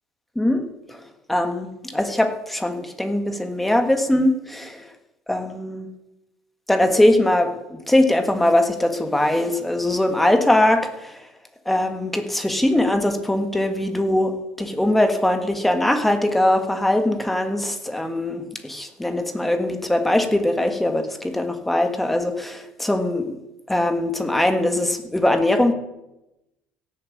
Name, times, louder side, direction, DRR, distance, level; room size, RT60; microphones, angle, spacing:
voice 1, 1.3-4.8 5.3-5.9 6.7-11.2 11.6-23.4 23.7-25.7, left 1 dB, 5° left, 6 dB, 1.6 m, -21 dB
16.5 x 7.4 x 8.4 m, 0.92 s
cardioid pair, 150°, 3 cm